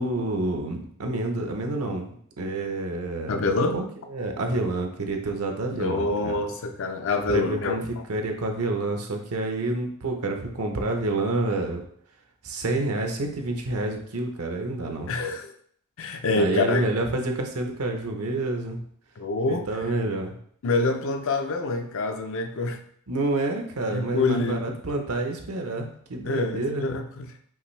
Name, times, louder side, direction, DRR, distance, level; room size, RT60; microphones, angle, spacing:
voice 1, 0.0-3.8 4.1-6.3 7.3-11.8 12.4-15.1 16.4-18.8 19.5-20.3 23.1-26.9, right 2 dB, 75° right, 3 dB, 0.8 m, -28 dB
voice 2, 3.3-3.8 5.7-7.8 15.1-15.5 16.0-16.8 19.2-19.7 20.6-22.8 23.9-24.7 26.2-27.4, left 3 dB, 60° left, 6 dB, 0.5 m, -26 dB
5.6 x 2.6 x 3.2 m, 0.62 s
head